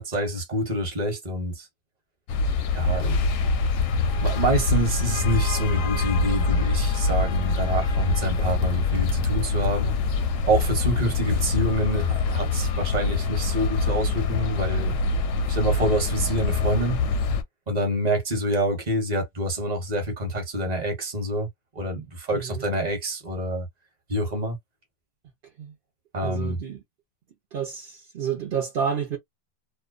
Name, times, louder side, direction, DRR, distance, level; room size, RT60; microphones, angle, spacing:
voice 1, 0.0-1.7 2.7-3.2 4.2-9.9 10.5-15.0 15.5-17.0 17.7-21.5 21.7-23.7 24.1-24.6 26.1-26.6, right 1 dB, 35° right, 0.9 m, -27 dB
sound 1, 2.3-17.4, left 3 dB, 70° left, 0.8 m, -24 dB
voice 2, 22.3-22.6 25.6-25.7 26.2-26.8 27.5-29.2, right 7 dB, 60° right, 0.5 m, -30 dB
2.5 x 2.1 x 2.3 m
omnidirectional pair, 1.6 m